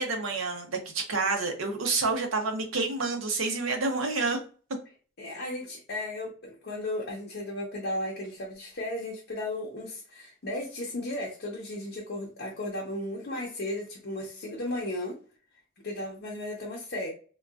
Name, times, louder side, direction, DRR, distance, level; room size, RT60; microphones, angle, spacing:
voice 1, 0.0-4.4, right 3 dB, 75° right, 0.8 m, -28 dB
voice 2, 5.2-15.2 15.8-17.1, left 1 dB, 55° left, 0.7 m, -35 dB
3.7 x 2.3 x 2.3 m
head